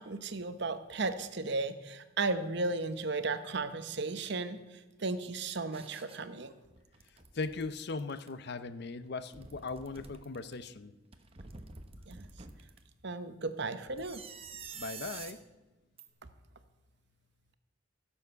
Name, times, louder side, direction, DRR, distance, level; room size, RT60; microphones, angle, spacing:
voice 1, 0.0-4.6 5.0-6.5 12.1-12.3 13.0-14.2, right 3 dB, 55° right, 11 dB, 0.8 m, -35 dB
sound 1, 5.7-6.2 6.6-8.3 9.1-10.5 11.1-12.8 13.9-15.4 16.0-16.1, right 5 dB, 30° right, 0.9 m, -48 dB
voice 2, 7.3-10.9 14.7-15.4, left 3 dB, 55° left, 13 dB, 0.6 m, -38 dB
15.5 x 7.2 x 6.8 m, 1.1 s
head